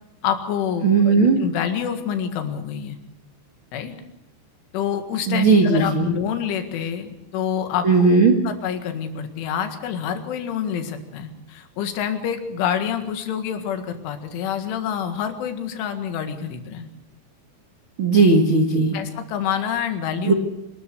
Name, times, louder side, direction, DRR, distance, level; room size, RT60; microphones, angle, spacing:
voice 1, 0.2-3.0 3.7-4.0 4.7-8.1 8.4-16.9 18.9-20.3, left 8 dB, 90° left, 7 dB, 4.3 m, -27 dB
voice 2, 0.8-1.4 5.3-6.1 7.8-8.3 18.0-18.9 20.2-20.3, right 4 dB, 65° right, 3 dB, 1.3 m, -16 dB
25.5 x 13.0 x 8.3 m, 0.90 s
omnidirectional pair, 5.4 m